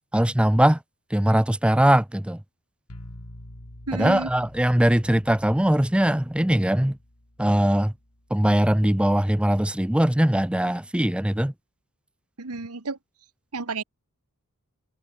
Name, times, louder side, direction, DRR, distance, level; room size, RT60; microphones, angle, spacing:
voice 1, 0.1-0.8 1.1-2.4 3.9-7.0 7.4-7.9 8.3-11.5, right 1 dB, 5° right, 0.6 m, -21 dB
sound 1, 2.9-8.7, left 1 dB, 85° left, 4.0 m, -47 dB
voice 2, 3.9-4.3 12.4-13.0 13.5-13.8, right 3 dB, 85° right, 1.5 m, -31 dB
head